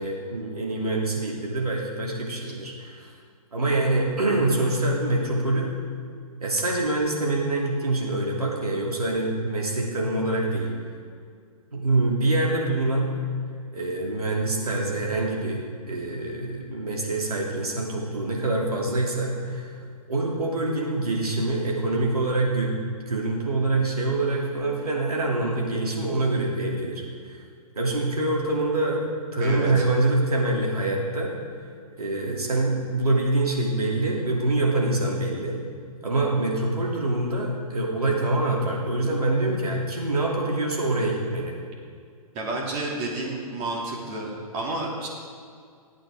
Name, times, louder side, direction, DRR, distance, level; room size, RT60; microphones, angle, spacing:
voice 1, 0.0-3.1 3.5-5.7 6.4-10.7 11.7-13.1 13.7-15.6 15.9-19.7 20.1-27.4 27.7-31.3 32.0-35.6 36.0-41.6, right 2 dB, 85° right, -2 dB, 3.1 m, -25 dB
voice 2, 29.4-29.8 42.3-45.1, right 2 dB, 35° right, -2 dB, 2.9 m, -30 dB
20.5 x 8.9 x 3.8 m, 2.2 s
hypercardioid pair, 125°, 19 cm